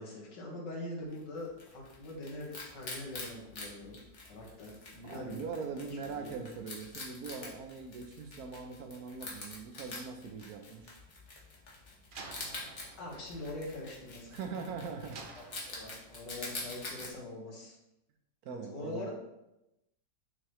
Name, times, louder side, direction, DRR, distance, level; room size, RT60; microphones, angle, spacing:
voice 1, 0.0-4.0 4.3-6.4 13.0-14.4 15.3-17.8 18.5-19.1, left 2 dB, 85° left, -2 dB, 2.0 m, -43 dB
Wild animals, 1.1-17.1, left 2 dB, 45° left, 1.4 m, -46 dB
voice 2, 5.0-11.0 14.3-15.3 17.0-17.1 18.4-19.1, right 5 dB, 70° right, 5 dB, 1.0 m, -42 dB
Slam, 12.1-14.5 15.1-16.3, right 3 dB, 85° right, 0.4 m, -51 dB
6.6 x 4.7 x 3.0 m, 0.90 s
omnidirectional pair, 1.9 m